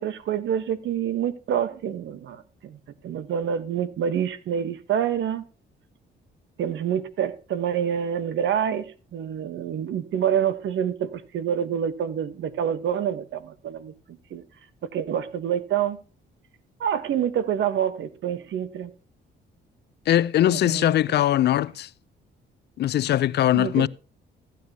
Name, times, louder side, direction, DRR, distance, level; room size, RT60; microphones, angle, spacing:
voice 1, 0.0-2.8 3.0-5.4 6.6-14.4 14.8-16.0 16.8-18.9 20.5-21.2 23.5-23.9, right 9 dB, 70° right, 1.0 m, -27 dB
voice 2, 20.1-21.9 22.8-23.9, left 12 dB, 60° left, 0.4 m, -21 dB
15.0 x 9.3 x 2.8 m
cardioid pair, 90°, 20 cm